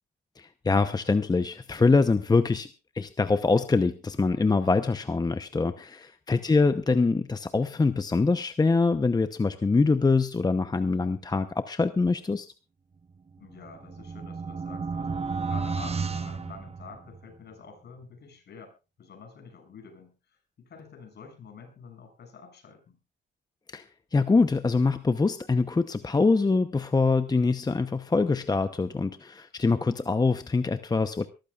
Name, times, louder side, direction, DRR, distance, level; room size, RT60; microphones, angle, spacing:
voice 1, 0.4-2.7 2.9-12.5 23.7-23.8 24.1-31.3, left 3 dB, 20° left, 10 dB, 0.9 m, -24 dB
voice 2, 6.3-6.6 13.4-23.0, left 5 dB, 55° left, 3 dB, 7.1 m, -48 dB
sound 1, 13.4-17.3, right 5 dB, 30° right, 1.1 m, -33 dB
23.0 x 14.0 x 2.5 m, 0.30 s
cardioid pair, 90°, 20 cm